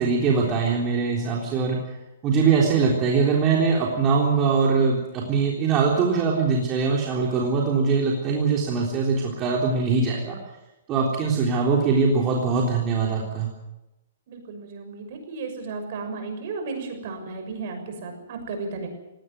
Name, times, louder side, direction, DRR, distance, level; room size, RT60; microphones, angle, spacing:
voice 1, 0.0-1.8 2.2-10.4 10.9-13.5, right 5 dB, 30° right, -2 dB, 3.7 m, -22 dB
voice 2, 14.3-18.9, right 4 dB, 55° right, 6 dB, 6.4 m, -34 dB
18.0 x 18.0 x 9.4 m, 0.97 s
hypercardioid pair, 140°, 0 cm